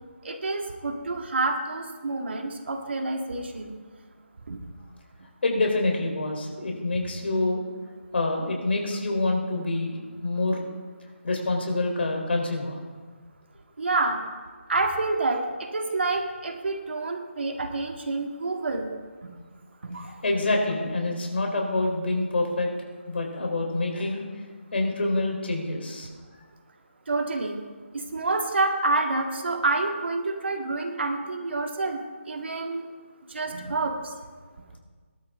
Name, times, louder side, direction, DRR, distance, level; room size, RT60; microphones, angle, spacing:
voice 1, 0.2-3.7 4.5-4.6 13.8-14.2 14.7-18.9 19.2-19.4 19.8-20.2 27.1-27.6 27.9-32.0 32.3-32.9 33.3-34.1, right 3 dB, 60° right, 3 dB, 2.1 m, -28 dB
voice 2, 5.4-7.6 8.1-9.9 10.2-10.6 11.2-12.8 20.2-22.7 23.1-24.2 24.7-26.1, left 2 dB, 55° left, 1 dB, 4.0 m, -26 dB
20.0 x 12.5 x 3.8 m, 1.5 s
figure-of-eight pair, 165°, 7 cm